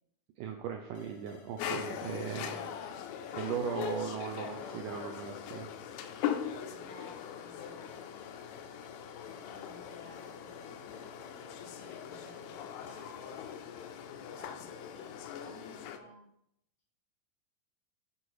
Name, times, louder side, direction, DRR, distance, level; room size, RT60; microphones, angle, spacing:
voice 1, 0.4-2.7 3.3-5.7, right 7 dB, 80° right, 3 dB, 2.0 m, -38 dB
sound 1, 0.9-14.3, left 5 dB, 70° left, 2.3 m, -55 dB
sound 2, 1.6-16.0, left 9 dB, 85° left, 2.6 m, -41 dB
voice 2, 1.9-3.0 4.4-5.0 6.7-8.0 8.6-11.1 11.6-16.2, left 2 dB, 40° left, -6 dB, 3.1 m, -56 dB
8.9 x 5.4 x 4.7 m, 0.77 s
omnidirectional pair, 4.3 m